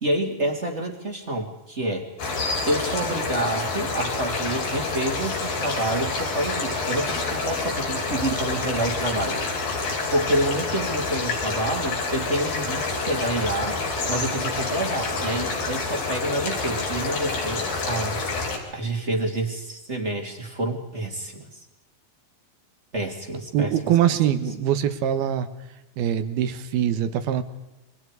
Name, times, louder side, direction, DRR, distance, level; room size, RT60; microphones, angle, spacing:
voice 1, 0.0-2.1 2.7-9.5 10.1-13.8 14.1-18.2 18.7-21.6 22.9-23.7, right 1 dB, 20° right, 3 dB, 2.1 m, -28 dB
sound 1, 2.2-18.6, left 3 dB, 60° left, 5.8 m, -28 dB
voice 2, 23.5-25.5 26.0-27.4, right 10 dB, 75° right, 10 dB, 3.2 m, -23 dB
28.5 x 24.5 x 4.8 m, 0.96 s
omnidirectional pair, 4.6 m